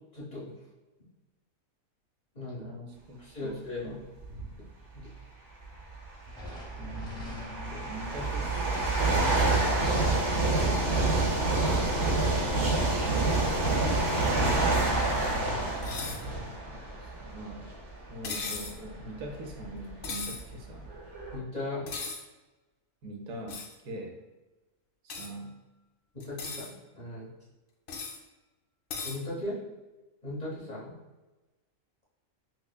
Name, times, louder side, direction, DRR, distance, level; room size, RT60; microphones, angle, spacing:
voice 1, 0.1-0.5 2.3-2.7 3.2-4.0 4.9-5.1 6.7-6.8 7.6-7.8 21.3-21.9 26.1-27.3 29.0-29.6 30.2-30.9, left 2 dB, 35° left, -8 dB, 0.9 m, -38 dB
voice 2, 2.6-4.0 6.8-9.0 16.4-17.7 18.1-20.9 23.0-24.2 25.0-25.6, equal, 80° right, 1 dB, 1.1 m, -43 dB
sound 1, 4.2-4.5 5.6-5.7 6.5-17.9 18.5-18.7 19.5-19.6 19.8-21.4, right 2 dB, 55° right, 1.1 m, -27 dB
Thunder, 6.3-15.0, left 1 dB, 5° left, 0.5 m, -44 dB
sound 2, 15.8-16.2 18.2-18.8 20.0-20.4 21.9-22.2 23.5-23.7 25.1-25.3 26.2-26.7 27.9-28.2 28.9-29.2, left 4 dB, 65° left, 0.5 m, -37 dB
5.7 x 2.0 x 2.2 m, 1.1 s
omnidirectional pair, 1.4 m